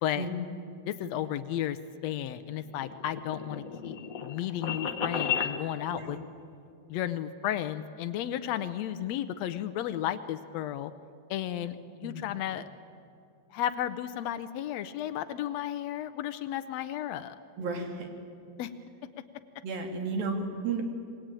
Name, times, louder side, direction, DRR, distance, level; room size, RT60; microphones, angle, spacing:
voice 1, 0.9-6.2 6.9-10.9 11.3-12.7 13.5-17.4 18.6-18.7, left 11 dB, 90° left, 11 dB, 1.5 m, -33 dB
sound 1, 2.5-5.5, left 7 dB, 40° left, 1.3 m, -33 dB
voice 2, 5.9-6.2 12.0-12.3 17.6-18.1 19.6-20.8, right 3 dB, 80° right, 3 dB, 4.5 m, -33 dB
27.0 x 22.0 x 9.1 m, 2.5 s
omnidirectional pair, 4.1 m